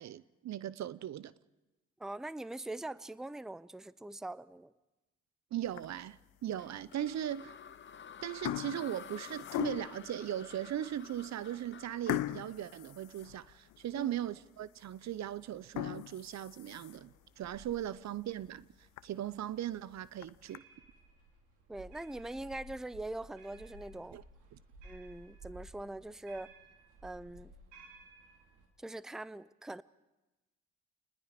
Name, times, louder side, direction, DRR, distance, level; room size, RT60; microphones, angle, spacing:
voice 1, 0.0-1.3 5.5-7.5 8.2-20.6 24.1-24.2 24.5-24.6, right 11 dB, 60° right, 0.7 m, -39 dB
voice 2, 2.0-4.7 13.9-14.1 21.7-24.2 24.8-26.5 27.0-27.5 28.8-29.8, right 2 dB, ahead, 0.6 m, -42 dB
sound 1, 5.6-6.2 6.7-6.9 7.7-8.0 8.2-10.1 10.7-10.8 11.2-11.3 12.1-13.8 14.3-14.4 14.8-14.9 15.6-17.2 17.6-17.7 18.1-18.2 18.6-18.7 19.0-19.1 20.0-20.6, left 16 dB, 85° left, 0.7 m, -39 dB
sound 2, 6.6-13.8, left 7 dB, 40° left, 0.8 m, -51 dB
sound 3, 17.1-28.7, right 2 dB, 75° right, 3.7 m, -56 dB
28.0 x 20.0 x 5.1 m
supercardioid pair, 55°, 31 cm